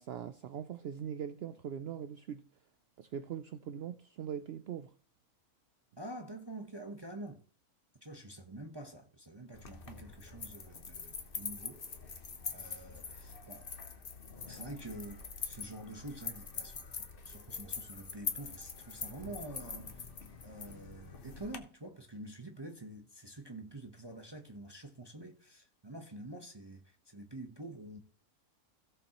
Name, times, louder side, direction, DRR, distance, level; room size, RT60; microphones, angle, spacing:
voice 1, 0.0-2.4 3.0-4.9, right 8 dB, 65° right, 0.6 m, -41 dB
voice 2, 6.0-7.4 8.0-11.8 12.5-13.7 14.5-20.0 20.4-28.0, right 1 dB, 20° right, 0.9 m, -47 dB
sound 1, 9.5-21.6, left 5 dB, 40° left, 1.2 m, -44 dB
16.5 x 7.0 x 3.0 m
omnidirectional pair, 1.6 m